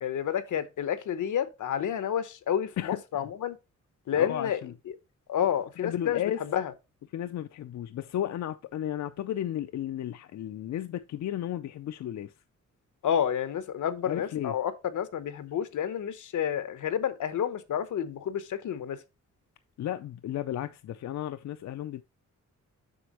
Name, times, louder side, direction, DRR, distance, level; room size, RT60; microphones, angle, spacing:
voice 1, 0.0-3.6 4.1-4.6 5.3-6.7 13.0-19.0, left 9 dB, 85° left, 1.0 m, -30 dB
voice 2, 2.8-3.3 4.1-4.7 5.8-6.4 7.1-12.3 14.1-14.5 19.8-22.0, left 11 dB, 65° left, 0.5 m, -34 dB
7.9 x 6.1 x 3.0 m
wide cardioid pair, 165°, 30 cm